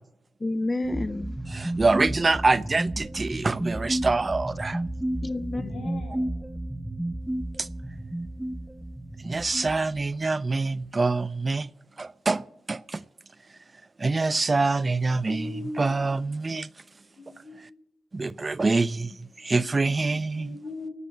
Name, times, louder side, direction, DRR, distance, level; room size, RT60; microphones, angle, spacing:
voice 1, 0.4-1.8 5.2-5.9, left 2 dB, 25° left, 0.4 m, -31 dB
sound 1, 0.8-10.4, right 1 dB, 10° right, 0.8 m, -32 dB
voice 2, 1.5-4.8 7.6-7.7 9.2-11.7 12.0-12.4 12.7-13.0 14.0-15.5 15.8-16.7 18.1-19.1 19.4-20.6, right 3 dB, 35° right, 0.4 m, -25 dB
voice 3, 5.5-6.3 15.3-16.2 17.2-17.6 19.0-19.1 19.6-20.0 20.3-20.9, left 2 dB, 90° left, 6.7 m, -39 dB
18.0 x 6.1 x 9.2 m
cardioid pair, 60°, 0 cm